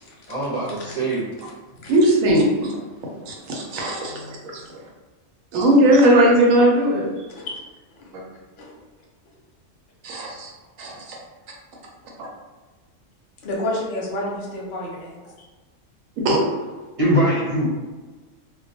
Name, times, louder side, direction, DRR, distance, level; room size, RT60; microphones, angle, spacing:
voice 1, 0.3-1.4 17.0-17.7, right 1 dB, 35° right, -8 dB, 0.6 m, -22 dB
voice 2, 1.9-2.8 3.3-4.2 4.5-4.6 5.5-7.1 10.0-10.5 10.8-11.2 16.2-16.4, right 1 dB, 90° right, -1 dB, 1.0 m, -18 dB
voice 3, 4.1-4.4 7.3-7.6 8.0-8.1 8.6-8.7 13.4-15.2, left 1 dB, 50° left, -3 dB, 0.7 m, -30 dB
2.2 x 2.1 x 2.6 m, 1.3 s
omnidirectional pair, 1.3 m